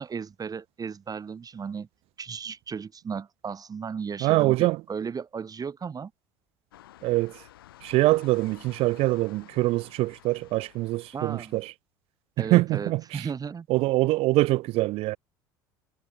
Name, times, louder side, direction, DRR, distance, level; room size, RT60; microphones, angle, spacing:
voice 1, 0.0-1.9 2.2-6.1 11.1-11.6 12.4-13.7, right 6 dB, 30° right, 3.2 m, -35 dB
voice 2, 4.2-4.8 7.0-7.4 7.8-11.7 12.4-13.3 13.7-15.2, right 19 dB, 55° right, 0.4 m, -24 dB
sound 1, 6.7-11.7, left 13 dB, 85° left, 4.3 m, -52 dB
hypercardioid pair, 70°, 12 cm